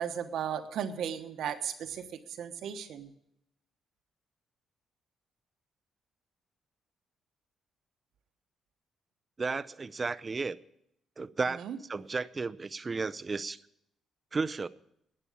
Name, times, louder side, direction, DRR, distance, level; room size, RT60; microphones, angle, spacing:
voice 1, 0.0-2.1 2.4-3.1 11.6-11.8, right 8 dB, 75° right, 7 dB, 1.2 m, -35 dB
voice 2, 9.4-10.6 11.2-13.6 14.3-14.7, right 4 dB, 30° right, 15 dB, 0.6 m, -33 dB
11.0 x 9.7 x 8.5 m, 0.76 s
cardioid pair, 90°, 0 cm